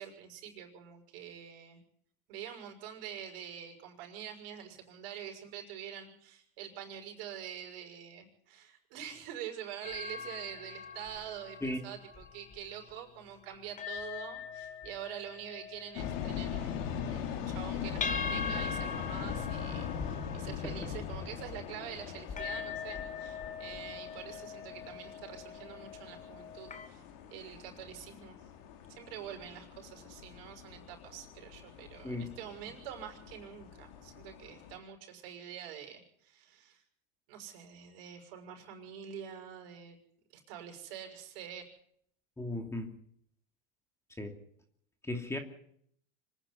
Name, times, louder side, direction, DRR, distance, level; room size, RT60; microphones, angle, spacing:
voice 1, 0.0-1.8 2.3-27.0 27.3-28.4 28.9-36.8 37.3-40.0 40.3-41.6, right 9 dB, 70° right, 3 dB, 6.2 m, -46 dB
sound 1, 9.8-13.1 13.5-26.9, left 5 dB, 25° left, 2.5 m, -42 dB
sound 2, 15.9-34.8, left 8 dB, 75° left, 3.4 m, -41 dB
voice 2, 32.0-32.4 42.4-42.9 44.2-44.4 45.0-45.4, left 1 dB, 10° left, 5 dB, 2.8 m, -36 dB
25.5 x 10.0 x 10.0 m, 0.67 s
supercardioid pair, 110°, 29 cm